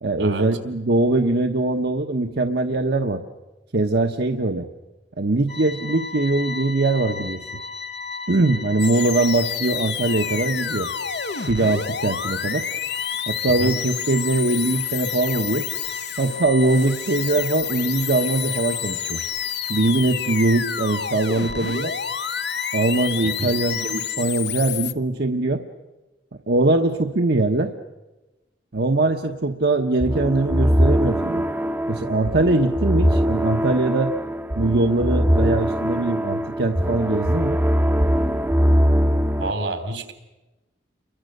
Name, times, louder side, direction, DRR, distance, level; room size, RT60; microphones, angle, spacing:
voice 1, 0.0-3.2 3.7-4.7 5.2-7.4 8.3-10.9 11.4-12.7 13.3-15.7 16.2-19.2 19.7-21.9 22.7-25.6 26.5-27.7 28.7-31.4 31.9-34.1 34.6-37.6, right 2 dB, 60° right, 4 dB, 1.1 m, -22 dB
sound 1, 5.5-24.2, left 4 dB, 40° left, 1.2 m, -35 dB
sound 2, 8.8-24.9, left 9 dB, 65° left, 0.9 m, -30 dB
voice 2, 23.2-23.5 39.4-40.1, right 2 dB, 85° right, 8 dB, 3.3 m, -28 dB
sound 3, 30.0-39.5, equal, 10° right, 0.8 m, -21 dB
29.5 x 23.0 x 6.6 m, 1.1 s
head